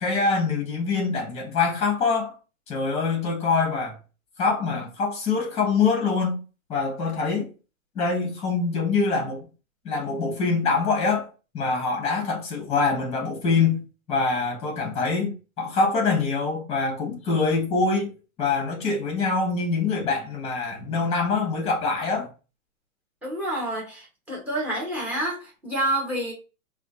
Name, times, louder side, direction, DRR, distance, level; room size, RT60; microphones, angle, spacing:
voice 1, 0.0-2.3 2.7-4.0 4.4-6.4 6.7-7.5 7.9-9.5 9.8-11.3 11.5-18.1 18.4-22.3, left 4 dB, 15° left, 1.3 m, -24 dB
voice 2, 23.2-26.3, right 1 dB, 5° right, 0.9 m, -28 dB
4.9 x 2.5 x 2.5 m
hypercardioid pair, 150°, 42 cm